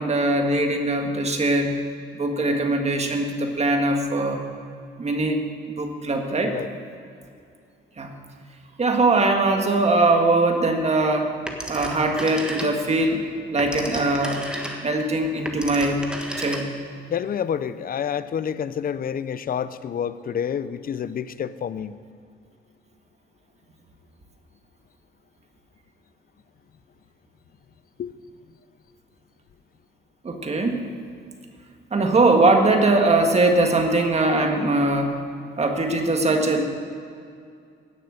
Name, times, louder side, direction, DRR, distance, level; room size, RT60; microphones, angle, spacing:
voice 1, 0.0-1.7 2.1-4.4 5.0-5.4 5.7-6.5 8.0-8.1 8.8-11.3 11.7-13.2 13.5-14.4 14.8-16.0 16.4-16.7 30.2-30.8 31.9-35.2 35.6-36.6, right 2 dB, 35° right, 4 dB, 1.8 m, -21 dB
Telephone, 11.5-13.0 13.4-17.0, equal, 5° right, 1.6 m, -33 dB
voice 2, 17.1-21.9 28.0-28.1, left 8 dB, 45° left, 14 dB, 0.6 m, -28 dB
17.0 x 6.7 x 6.5 m, 2.4 s
cardioid pair, 90°, 20 cm